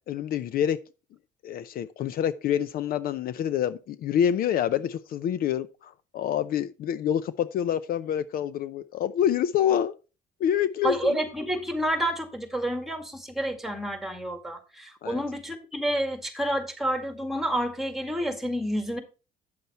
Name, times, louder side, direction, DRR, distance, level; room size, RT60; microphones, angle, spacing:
voice 1, 0.1-0.8 1.4-9.9 10.4-11.2 15.0-15.2, left 9 dB, 60° left, 0.5 m, -27 dB
voice 2, 10.8-19.0, right 1 dB, ahead, 1.9 m, -29 dB
9.4 x 6.9 x 4.2 m
cardioid pair, 110°, 17 cm